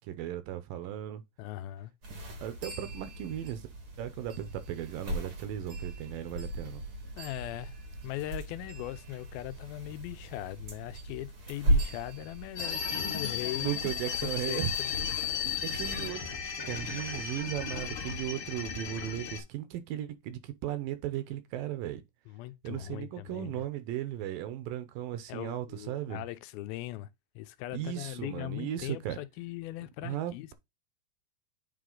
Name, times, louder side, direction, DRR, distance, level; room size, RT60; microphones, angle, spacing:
voice 1, 0.1-1.2 2.4-3.6 4.0-6.8 13.6-14.7 15.4-16.2 16.6-22.0 22.6-26.2 27.7-29.2 30.0-30.5, right 12 dB, 80° right, 2.3 m, -36 dB
voice 2, 1.4-1.9 7.2-7.8 8.0-13.8 14.2-14.9 22.3-23.7 25.3-27.1 27.4-30.5, left 15 dB, 85° left, 2.4 m, -40 dB
sound 1, 2.0-16.1, right 1 dB, 55° right, 1.0 m, -37 dB
sound 2, 12.6-19.4, left 7 dB, 55° left, 1.4 m, -35 dB
9.2 x 3.3 x 3.8 m
omnidirectional pair, 4.2 m